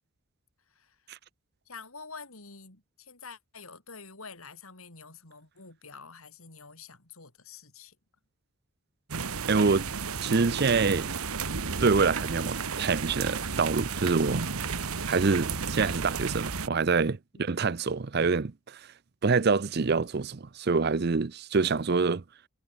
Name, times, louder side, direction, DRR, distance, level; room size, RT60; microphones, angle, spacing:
voice 1, 0.7-1.1 1.6-8.0 17.3-17.5, left 4 dB, 80° left, 4.8 m, -47 dB
sound 1, 9.1-16.7, right 5 dB, 85° right, 1.4 m, -33 dB
voice 2, 9.5-9.9 10.2-11.1 11.8-14.5 15.1-18.8 19.2-22.2, right 4 dB, 50° right, 0.5 m, -26 dB
head